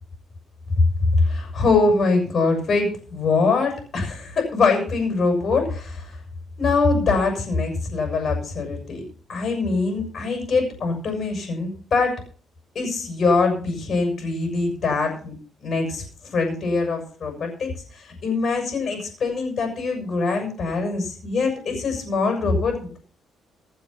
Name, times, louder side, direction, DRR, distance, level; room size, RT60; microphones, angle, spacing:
voice 1, 1.2-6.2 6.6-9.0 9.3-12.2 12.8-15.3 15.6-16.0 16.3-23.0, left 3 dB, 45° left, 3 dB, 7.1 m, -23 dB
17.0 x 8.8 x 5.9 m, 0.42 s
cardioid pair, 125°, 0 cm